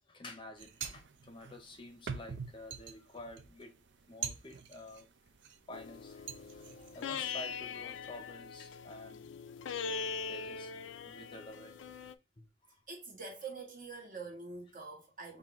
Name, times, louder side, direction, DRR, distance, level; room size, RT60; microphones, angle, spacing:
voice 1, 0.1-3.7 4.1-5.1 5.7-9.4 10.0-10.7 11.0-11.7 12.4-12.7, left 2 dB, 25° left, 0.7 m, -50 dB
sound 1, 0.6-5.6 6.0-7.0, right 6 dB, 65° right, 0.5 m, -44 dB
sound 2, 5.7-12.1, left 5 dB, 75° left, 0.4 m, -41 dB
voice 2, 12.9-15.4, right 4 dB, 45° right, 1.2 m, -45 dB
5.5 x 2.6 x 3.0 m
head